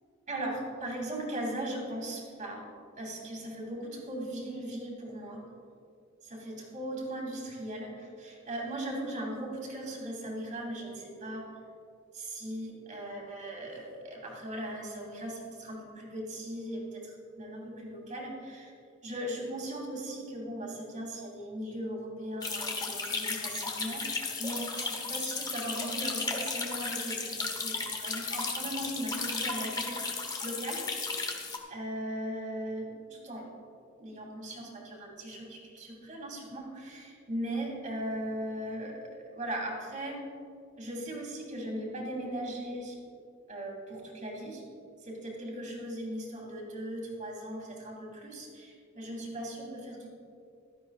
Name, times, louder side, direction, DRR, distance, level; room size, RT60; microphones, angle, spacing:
voice 1, 0.3-2.7 3.0-5.4 6.2-11.4 12.1-18.7 19.0-27.8 28.0-30.0 30.4-30.9 31.7-33.5 34.0-40.2 40.8-43.0 43.5-44.6 45.0-50.1, right 1 dB, 40° right, -1 dB, 2.6 m, -38 dB
sound 1, 22.4-31.6, left 4 dB, 20° left, 1.1 m, -34 dB
16.0 x 12.5 x 2.4 m, 2.4 s
head